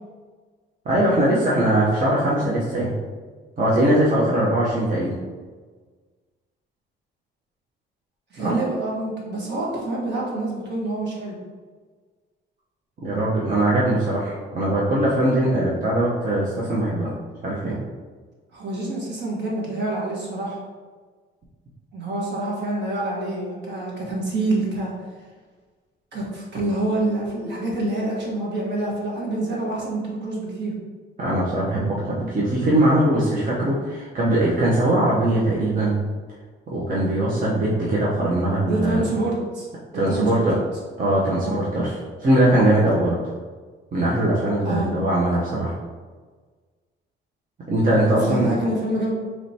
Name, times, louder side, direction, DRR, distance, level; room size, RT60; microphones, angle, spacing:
voice 1, 0.8-2.9 3.6-5.1 8.4-8.5 13.0-17.1 17.4-17.8 31.2-36.0 36.7-39.0 39.9-40.5 41.0-43.2 43.9-45.7 47.7-48.5, right 1 dB, 45° right, -6 dB, 0.9 m, -21 dB
voice 2, 8.3-11.4 18.5-20.6 21.9-24.9 26.1-30.7 38.7-39.7 39.9-40.5 41.4-41.6 44.6-44.9 48.2-49.1, right 2 dB, 60° right, -3 dB, 1.4 m, -27 dB
5.0 x 3.1 x 2.8 m, 1.5 s
cardioid pair, 90°, 20 cm